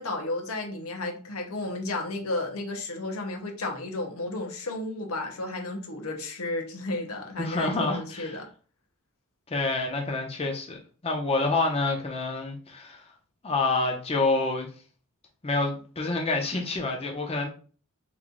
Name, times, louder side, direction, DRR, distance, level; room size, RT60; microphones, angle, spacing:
voice 1, 0.0-8.5, left 2 dB, 85° left, 0.9 m, -33 dB
voice 2, 7.4-8.3 9.5-10.8 11.0-13.0 13.4-14.7 15.4-17.5, left 3 dB, 30° left, 0.6 m, -27 dB
3.1 x 2.6 x 3.8 m
head